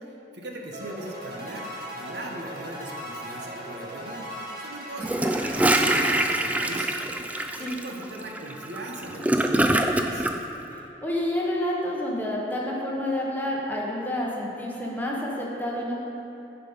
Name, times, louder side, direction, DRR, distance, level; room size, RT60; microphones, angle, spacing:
voice 1, 0.0-4.3 4.6-7.0 7.6-10.3, right 1 dB, 75° right, 0 dB, 1.1 m, -39 dB
sound 1, 0.7-7.0, equal, 55° right, 2.0 m, -38 dB
Gurgling / Toilet flush, 5.0-10.4, right 1 dB, 10° right, 0.3 m, -24 dB
voice 2, 11.0-15.9, left 1 dB, 10° left, -4 dB, 1.0 m, -29 dB
10.0 x 5.0 x 5.1 m, 2.9 s
head